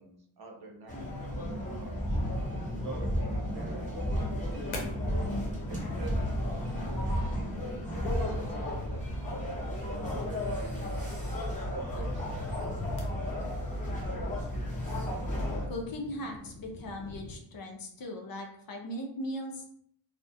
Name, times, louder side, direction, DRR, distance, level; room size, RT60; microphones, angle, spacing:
voice 1, 0.0-2.2 2.8-4.9 5.7-6.3 6.8-9.1 9.9-11.1 11.7-12.5, right 4 dB, 50° right, 0 dB, 0.7 m, -46 dB
sound 1, 0.9-15.7, left 1 dB, 15° left, 0.8 m, -35 dB
sound 2, 1.3-8.7, equal, 5° right, 0.4 m, -34 dB
sound 3, 2.1-17.4, left 1 dB, 85° left, 0.7 m, -44 dB
voice 2, 15.7-19.6, left 1 dB, 50° left, 3 dB, 0.5 m, -38 dB
2.3 x 2.1 x 2.6 m, 0.67 s
cardioid pair, 80°, 48 cm